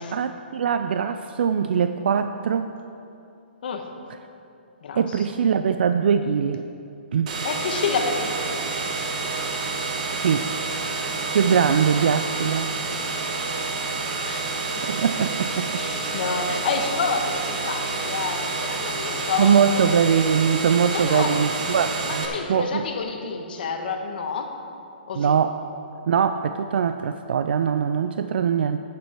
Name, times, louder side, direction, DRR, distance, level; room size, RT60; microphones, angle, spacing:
voice 1, 0.0-2.7 4.9-6.6 7.1-7.4 10.1-10.5 11.3-12.7 14.9-15.7 18.1-18.3 19.4-22.8 25.2-25.6 26.1-28.8, right 7 dB, 65° right, 9 dB, 0.4 m, -22 dB
voice 2, 4.8-5.3 7.4-8.7 14.2-14.8 15.7-19.9 20.6-21.3 22.0-24.6 25.1-25.3, left 5 dB, 55° left, 4 dB, 1.3 m, -29 dB
sound 1, 7.3-22.3, right 3 dB, 40° right, 1.7 m, -29 dB
11.5 x 9.3 x 4.4 m, 2.6 s
hypercardioid pair, 160°, 6 cm